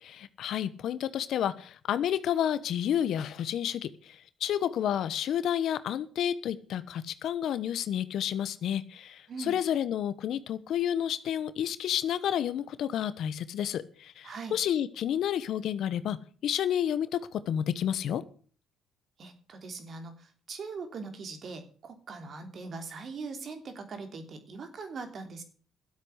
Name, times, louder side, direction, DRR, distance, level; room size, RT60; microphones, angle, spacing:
voice 1, 0.0-16.2 16.4-18.2, left 10 dB, 65° left, 14 dB, 1.1 m, -30 dB
voice 2, 19.2-25.4, right 4 dB, 50° right, 7 dB, 3.2 m, -41 dB
12.5 x 8.2 x 8.0 m, 0.42 s
cardioid pair, 80°, 0 cm